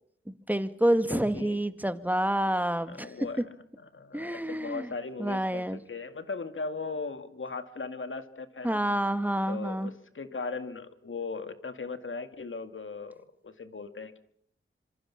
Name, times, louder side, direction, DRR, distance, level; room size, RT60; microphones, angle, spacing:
voice 1, 0.5-3.1 4.1-4.9 5.2-5.8 8.6-9.9, right 1 dB, 10° right, 10 dB, 1.9 m, -28 dB
voice 2, 1.1-1.6 2.9-3.5 3.8-8.8 9.5-14.2, left 4 dB, 70° left, 9 dB, 2.1 m, -38 dB
26.5 x 24.5 x 5.9 m, 0.63 s
wide cardioid pair, 50°, 21 cm